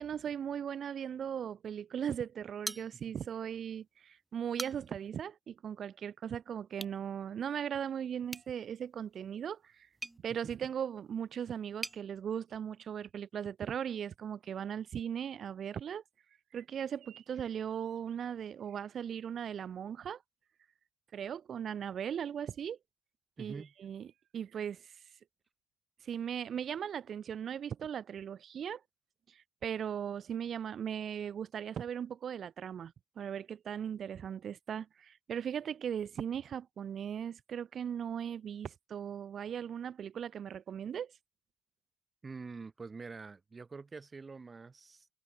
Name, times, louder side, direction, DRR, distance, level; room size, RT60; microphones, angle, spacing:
voice 1, 0.0-9.9 10.2-16.0 16.5-20.2 21.1-22.8 23.4-24.1 24.3-24.9 26.0-28.8 29.3-41.1, right 8 dB, 60° right, 1.6 m, -38 dB
sound 1, 2.6-3.4 3.8-3.9 4.4-5.1 6.7-7.0 8.3-12.0, right 2 dB, 15° right, 1.2 m, -45 dB
sound 2, 16.2-19.3 23.5-24.7, right 12 dB, 75° right, 5.2 m, -65 dB
voice 2, 23.4-23.7 42.2-45.1, right 4 dB, 30° right, 1.4 m, -46 dB
cardioid pair, 90°, 0 cm